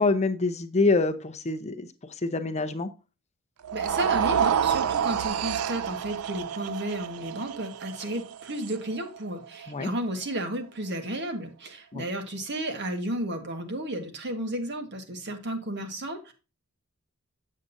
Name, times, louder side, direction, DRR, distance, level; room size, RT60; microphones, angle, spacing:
voice 1, 0.0-1.9 2.2-2.9 9.7-9.9 11.9-12.0, left 3 dB, 30° left, 8 dB, 0.7 m, -25 dB
sound 1, 3.6-9.9, right 8 dB, 80° right, 0.4 m, -29 dB
voice 2, 3.7-16.3, right 1 dB, 55° right, 6 dB, 1.5 m, -33 dB
7.6 x 7.5 x 2.6 m, 0.30 s
head